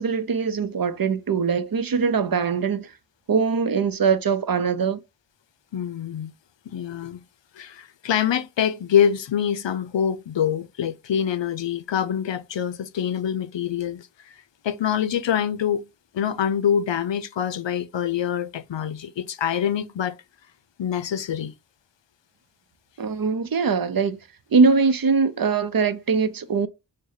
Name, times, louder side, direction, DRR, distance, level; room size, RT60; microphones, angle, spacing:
voice 1, 0.0-2.9 3.3-5.0 23.0-24.2 24.5-26.7, right 5 dB, 50° right, 0.6 m, -22 dB
voice 2, 5.7-6.3 6.7-7.2 7.6-14.1 14.6-15.8 16.1-20.1 20.8-21.5, left 9 dB, 80° left, 0.6 m, -25 dB
6.3 x 2.2 x 2.6 m
wide cardioid pair, 60°, 44 cm